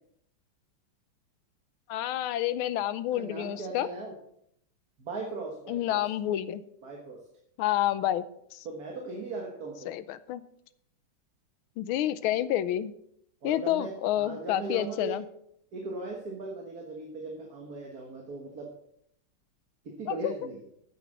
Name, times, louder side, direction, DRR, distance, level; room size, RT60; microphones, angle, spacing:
voice 1, 1.9-3.9 5.7-6.6 7.6-8.2 8.5-8.7 9.9-10.4 11.8-12.9 13.4-15.2 20.1-20.3, left 12 dB, 90° left, 14 dB, 1.5 m, -29 dB
voice 2, 3.2-4.1 5.0-6.0 6.8-7.2 8.7-9.9 13.4-15.2 15.7-18.7 19.9-20.6, right 3 dB, 50° right, 0 dB, 1.9 m, -38 dB
9.3 x 8.0 x 6.1 m, 0.71 s
omnidirectional pair, 2.2 m